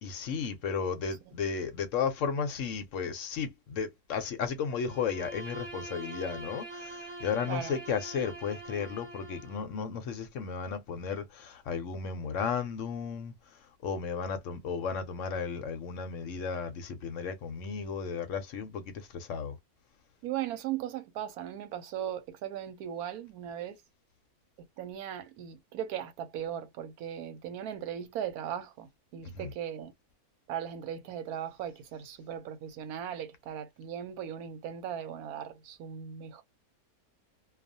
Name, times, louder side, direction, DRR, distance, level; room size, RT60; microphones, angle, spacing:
voice 1, 0.0-13.3 13.8-19.6 29.2-29.5, left 6 dB, 70° left, 0.9 m, -34 dB
Bowed string instrument, 4.8-9.7, right 2 dB, 25° right, 0.7 m, -44 dB
voice 2, 7.4-7.7 20.2-23.8 24.6-29.9 30.5-36.4, right 10 dB, 90° right, 1.1 m, -38 dB
2.3 x 2.3 x 2.6 m
omnidirectional pair, 1.5 m